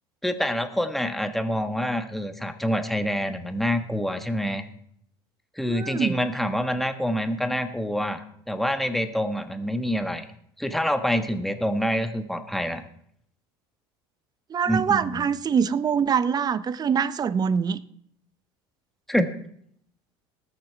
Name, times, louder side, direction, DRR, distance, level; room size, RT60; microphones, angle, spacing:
voice 1, 0.2-4.6 5.6-10.3 10.6-12.8 14.7-15.2 19.1-19.3, equal, ahead, 8 dB, 1.4 m, -26 dB
voice 2, 5.7-6.2 14.5-17.8, right 7 dB, 30° right, 16 dB, 0.7 m, -24 dB
19.5 x 6.6 x 4.5 m, 0.68 s
supercardioid pair, 90°, 12 cm